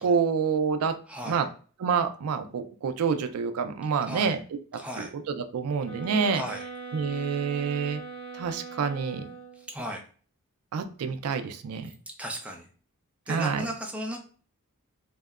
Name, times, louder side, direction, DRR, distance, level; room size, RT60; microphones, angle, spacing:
voice 1, 0.0-0.9 1.3-1.5 1.8-4.4 5.0-6.4 6.9-8.0 8.3-9.3 10.7-11.9 13.3-13.6, right 6 dB, 80° right, 8 dB, 0.3 m, -27 dB
voice 2, 1.1-1.4 4.1-4.4 4.8-5.1 6.3-6.6 9.7-10.0 12.1-12.7 13.3-14.2, equal, 5° right, 1 dB, 0.4 m, -36 dB
sound 1, 5.8-9.7, right 4 dB, 70° left, 1.3 m, -41 dB
2.7 x 2.1 x 2.3 m, 0.41 s
head